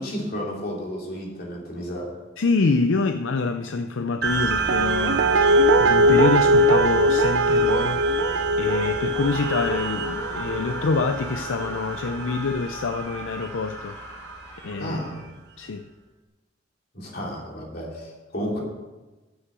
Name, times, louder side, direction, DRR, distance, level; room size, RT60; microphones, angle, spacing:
voice 1, 0.0-2.1 14.8-15.2 16.9-18.6, equal, 55° left, -2 dB, 3.2 m, -32 dB
voice 2, 2.4-14.0 14.6-15.0 15.6-15.9, left 4 dB, 75° left, 8 dB, 0.5 m, -26 dB
sound 1, 4.2-15.1, right 5 dB, 60° right, 1.4 m, -30 dB
Guitar, 4.7-11.7 12.0-12.1, right 1 dB, 85° right, 0.6 m, -21 dB
Screaming, 9.1-15.4, left 1 dB, 15° left, 2.5 m, -39 dB
9.7 x 8.4 x 6.1 m, 1.2 s
head